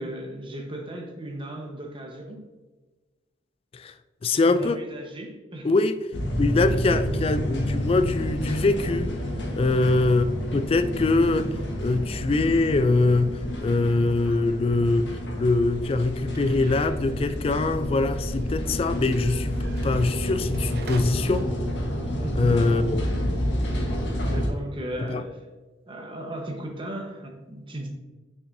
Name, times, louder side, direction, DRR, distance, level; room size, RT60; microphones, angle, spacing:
voice 1, 0.0-2.5 4.4-5.7 6.7-6.8 9.6-9.9 22.2-22.6 23.6-23.8 24.2-25.5 25.9-27.9, right 1 dB, 30° right, 1.1 m, -36 dB
voice 2, 4.2-4.8 5.6-6.0 6.4-9.1 9.5-10.3 10.5-21.5 22.3-23.0 25.0-25.2, left 3 dB, 30° left, 0.3 m, -23 dB
sound 1, 6.1-24.5, equal, 80° left, 1.3 m, -29 dB
sound 2, 15.2-21.0, right 3 dB, 60° right, 0.7 m, -47 dB
6.1 x 5.9 x 2.6 m
head